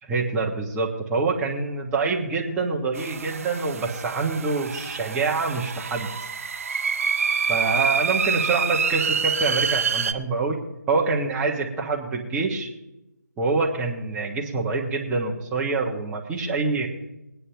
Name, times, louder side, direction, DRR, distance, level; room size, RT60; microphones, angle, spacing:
voice 1, 0.0-6.1 7.5-10.6 10.9-12.7 13.4-16.9, right 4 dB, 10° right, -2 dB, 1.3 m, -26 dB
sound 1, 3.0-10.1, right 6 dB, 45° right, 0.6 m, -26 dB
21.0 x 9.7 x 3.4 m, 0.94 s
figure-of-eight pair, 160°, 10 cm